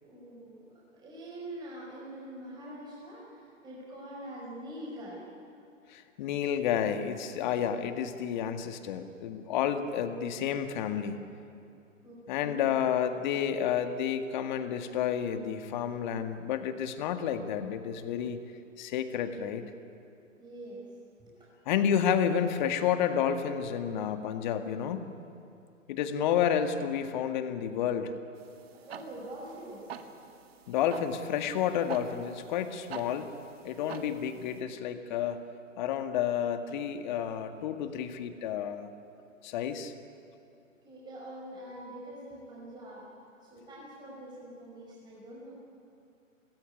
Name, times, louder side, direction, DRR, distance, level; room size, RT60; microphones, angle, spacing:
voice 1, 0.0-5.2 9.5-9.7 12.0-12.8 20.4-20.8 21.2-21.5 28.7-29.8 33.8-34.1 40.8-43.1 43.4-45.6, right 1 dB, 10° right, -5 dB, 5.3 m, -45 dB
voice 2, 5.9-11.2 12.3-18.4 18.8-19.7 21.7-25.0 25.9-28.2 30.7-33.3 33.6-35.4 35.8-38.9 39.4-39.9, left 8 dB, 35° left, 7 dB, 1.9 m, -30 dB
sound 1, 28.4-34.6, right 7 dB, 50° right, 2.0 m, -47 dB
26.5 x 19.5 x 9.9 m, 2.6 s
figure-of-eight pair, 125°, 39 cm